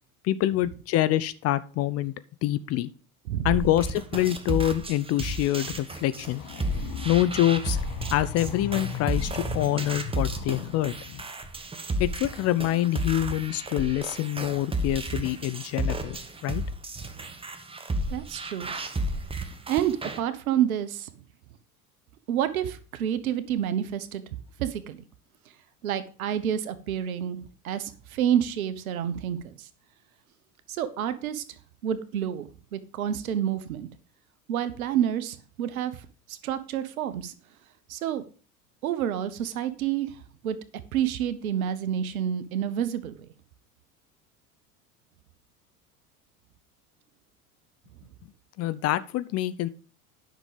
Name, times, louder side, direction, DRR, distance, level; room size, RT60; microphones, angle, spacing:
voice 1, 0.2-2.1 2.4-2.9 3.4-6.4 7.0-7.8 8.1-10.9 12.0-16.6 48.6-49.7, left 13 dB, 35° left, 14 dB, 0.6 m, -26 dB
sound 1, 3.5-20.2, right 1 dB, 10° right, 1.2 m, -33 dB
sound 2, 6.2-11.2, left 8 dB, 50° left, 2.0 m, -38 dB
voice 2, 18.1-18.8 19.7-21.1 22.3-24.2 24.6-25.0 25.8-27.4 27.6-29.7 30.7-31.4 31.8-33.9 34.5-36.0 36.3-37.3 37.9-38.2 38.8-40.2 40.4-40.6 40.9-43.1, right 10 dB, 65° right, 13 dB, 1.2 m, -28 dB
10.0 x 6.1 x 5.1 m, 0.38 s
figure-of-eight pair, 80°, 44 cm